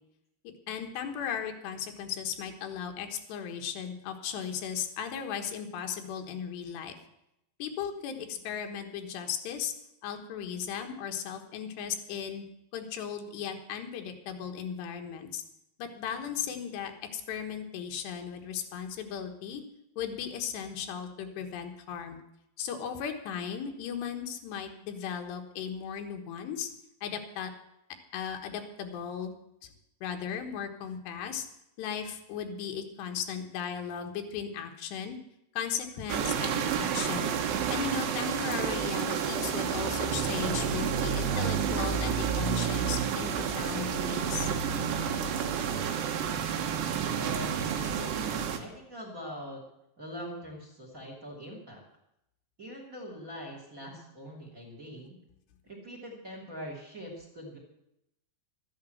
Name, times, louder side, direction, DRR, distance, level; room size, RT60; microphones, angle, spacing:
voice 1, 0.7-7.0 7.6-9.7 10.0-12.4 12.7-15.4 15.8-19.6 20.0-22.2 22.6-26.7 27.0-27.5 28.1-29.3 29.6-29.7 30.0-31.5 31.8-35.2 35.5-37.3 37.7-44.5, left 8 dB, 85° left, 5 dB, 3.5 m, -36 dB
sound 1, 36.1-48.6, right 7 dB, 85° right, 3.5 m, -30 dB
voice 2, 47.1-49.6 50.0-51.8 52.6-55.1 55.6-57.6, equal, 25° right, 1 dB, 2.7 m, -43 dB
13.0 x 10.5 x 7.8 m, 0.82 s
omnidirectional pair, 4.7 m